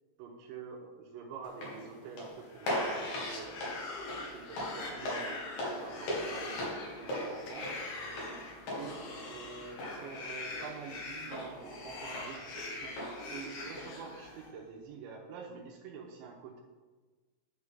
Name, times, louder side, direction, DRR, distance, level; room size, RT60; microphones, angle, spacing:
voice 1, 0.2-3.7 4.1-7.8 8.7-13.0 13.3-16.6, right 5 dB, 75° right, 0 dB, 3.0 m, -46 dB
sound 1, 1.4-14.5, left 1 dB, 55° left, 2.3 m, -41 dB
sound 2, 2.5-14.5, left 3 dB, 70° left, 2.1 m, -43 dB
11.0 x 5.4 x 3.6 m, 1.3 s
omnidirectional pair, 5.7 m